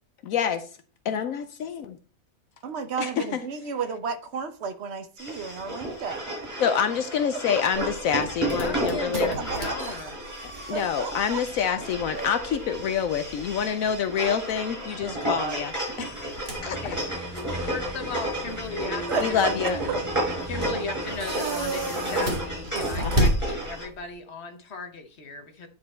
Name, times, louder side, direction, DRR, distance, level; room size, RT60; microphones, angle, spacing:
voice 1, 0.2-0.6 1.0-2.0 3.0-3.4 6.6-9.3 10.7-16.3 16.6-16.9 19.2-19.8 23.0-23.3, left 7 dB, 75° left, 1.0 m, -27 dB
voice 2, 2.6-6.3 9.3-9.8 10.7-11.4 15.0-15.6 16.0-16.1 19.1-19.5 19.9-20.0 22.7-23.1, right 6 dB, 55° right, 1.0 m, -33 dB
sound 1, 5.2-23.8, right 1 dB, 10° right, 4.5 m, -32 dB
sound 2, 7.7-24.1, right 1 dB, 35° right, 1.9 m, -33 dB
voice 3, 8.6-10.2 16.6-17.0 17.7-19.8 20.5-25.7, left 4 dB, 50° left, 1.3 m, -36 dB
sound 3, 16.6-22.6, equal, 15° left, 2.5 m, -40 dB
9.5 x 4.7 x 4.2 m
omnidirectional pair, 1.5 m